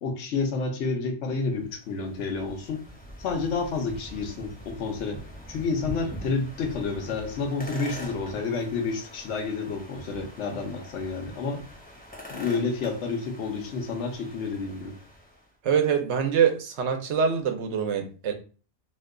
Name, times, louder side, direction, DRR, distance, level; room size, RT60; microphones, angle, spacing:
voice 1, 0.0-2.8 3.2-5.2 5.5-11.6 12.3-14.9, left 4 dB, 85° left, 3 dB, 1.0 m, -30 dB
sound 1, 1.4-15.5, left 1 dB, 10° left, 0.6 m, -44 dB
voice 2, 15.6-18.3, right 7 dB, 80° right, 5 dB, 0.9 m, -24 dB
2.7 x 2.2 x 3.6 m, 0.37 s
omnidirectional pair, 1.2 m